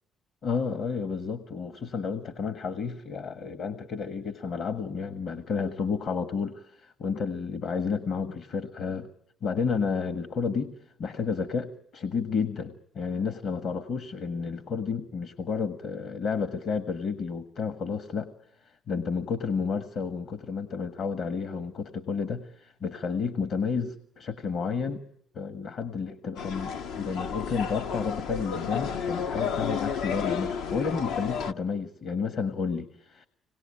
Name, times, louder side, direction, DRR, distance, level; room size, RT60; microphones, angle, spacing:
voice 1, 0.4-9.1 9.4-10.7 11.0-18.3 18.9-25.0 25.3-33.3, left 5 dB, 60° left, 11 dB, 1.4 m, -31 dB
sound 1, 26.4-31.5, left 6 dB, 90° left, 1.0 m, -31 dB
26.0 x 19.5 x 8.6 m, 0.75 s
supercardioid pair, 75°, 0 cm